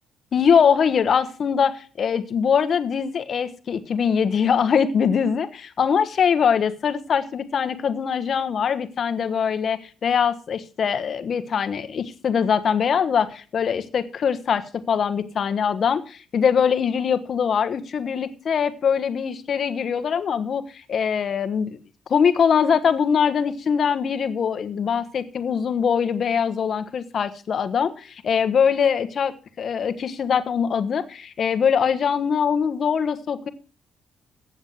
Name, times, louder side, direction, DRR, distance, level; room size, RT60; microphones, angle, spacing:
voice 1, 0.3-21.8 22.1-33.5, left 7 dB, 55° left, 1.2 m, -22 dB
9.0 x 7.4 x 7.7 m
cardioid pair, 90°, 0 cm